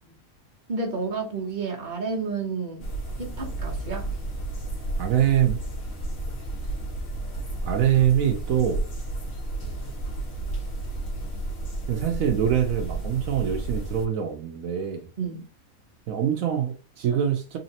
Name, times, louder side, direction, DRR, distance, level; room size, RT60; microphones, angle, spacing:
voice 1, 0.7-2.9 3.2-4.1 15.2-15.4, right 4 dB, 40° right, 1.0 m, -30 dB
sound 1, 2.8-14.1, right 2 dB, 70° left, 2.0 m, -32 dB
voice 2, 5.0-5.6 7.6-8.8 11.9-15.1 16.1-17.6, right 10 dB, 75° right, 1.0 m, -24 dB
4.0 x 3.1 x 2.8 m
omnidirectional pair, 1.5 m